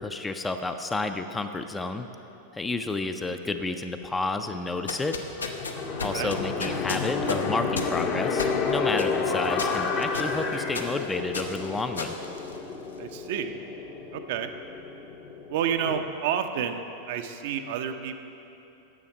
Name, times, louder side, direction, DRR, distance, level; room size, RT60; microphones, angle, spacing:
voice 1, 0.0-2.1 2.5-5.2 6.0-12.2, left 3 dB, 10° left, 7 dB, 0.4 m, -31 dB
sound 1, 4.7-13.1, left 3 dB, 75° left, 0.7 m, -35 dB
sound 2, 5.4-16.0, left 5 dB, 35° left, 0.8 m, -31 dB
voice 2, 13.0-13.5 14.1-14.5 15.5-18.2, right 8 dB, 50° right, 7 dB, 0.5 m, -30 dB
9.9 x 7.0 x 5.2 m, 2.9 s
figure-of-eight pair, 90°, 0 cm